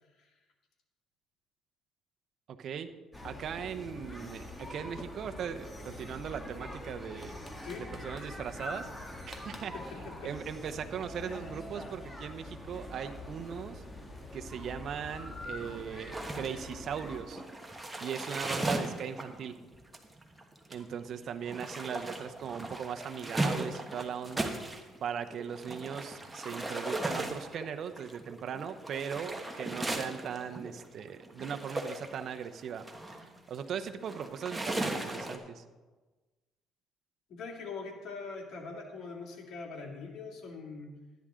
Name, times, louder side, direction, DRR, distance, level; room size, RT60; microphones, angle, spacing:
voice 1, 2.5-2.9 3.2-7.4 7.8-8.9 9.3-13.8 14.3-17.4 18.0-19.5 20.7-24.5 25.0-32.8 33.5-35.6, right 7 dB, 55° right, 8 dB, 0.8 m, -39 dB
sound 1, 3.1-17.2, left 1 dB, 15° left, 1.8 m, -44 dB
voice 2, 9.7-10.3 37.3-40.9, left 4 dB, 65° left, 1 dB, 2.5 m, -42 dB
sound 2, 16.1-25.0 25.3-35.4, right 1 dB, 10° right, 1.4 m, -37 dB
12.5 x 10.5 x 3.7 m, 1.2 s
cardioid pair, 95°, 0 cm